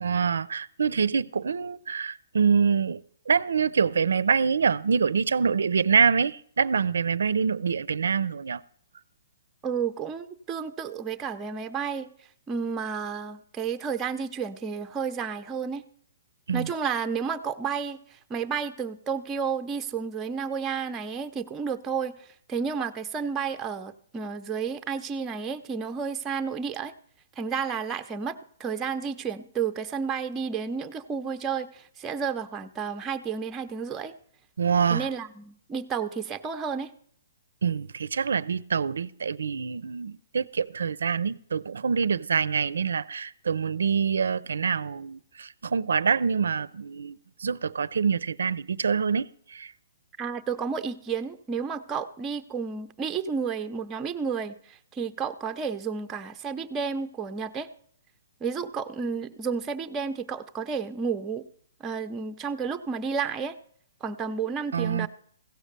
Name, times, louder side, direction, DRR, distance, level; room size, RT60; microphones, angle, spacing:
voice 1, 0.0-8.6 16.5-16.7 34.6-35.1 37.6-49.7 64.7-65.1, right 6 dB, 90° right, 0.4 m, -25 dB
voice 2, 9.6-12.1 12.5-15.8 16.5-18.0 18.3-22.1 22.5-26.9 27.4-34.1 34.9-36.9 50.2-57.7 58.4-61.4 61.8-63.6 64.0-65.1, right 6 dB, 15° right, 0.6 m, -31 dB
15.5 x 6.3 x 6.7 m
hypercardioid pair, 155°, 0 cm